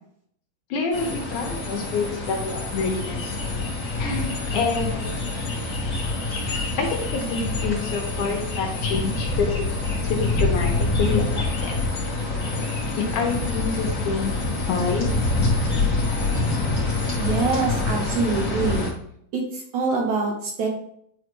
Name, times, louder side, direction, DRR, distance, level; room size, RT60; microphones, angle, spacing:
voice 1, 0.7-3.4 4.0-5.2 6.5-11.7 13.0-14.3 14.7-15.1, left 4 dB, 70° left, 1 dB, 2.2 m, -27 dB
sound 1, 0.9-18.9, left 3 dB, 35° left, 3.0 m, -26 dB
voice 2, 17.1-18.9 19.3-20.7, right 4 dB, 65° right, -1 dB, 2.3 m, -25 dB
9.5 x 4.1 x 3.3 m, 0.68 s
omnidirectional pair, 4.1 m